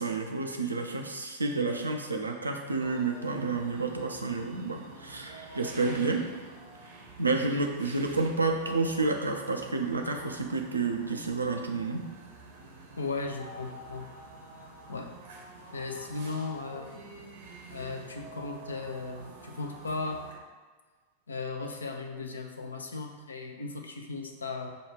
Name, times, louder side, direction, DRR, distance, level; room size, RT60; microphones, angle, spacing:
voice 1, 0.0-6.2 7.2-12.0, right 3 dB, 80° right, 3 dB, 0.5 m, -30 dB
sound 1, 2.8-20.3, right 2 dB, 65° right, 0.9 m, -48 dB
voice 2, 13.0-14.1 14.9-15.1 15.7-16.9 17.7-20.2 21.3-24.7, left 3 dB, 75° left, 3 dB, 0.5 m, -36 dB
5.1 x 2.3 x 4.4 m, 1.4 s
figure-of-eight pair, 90°, 0 cm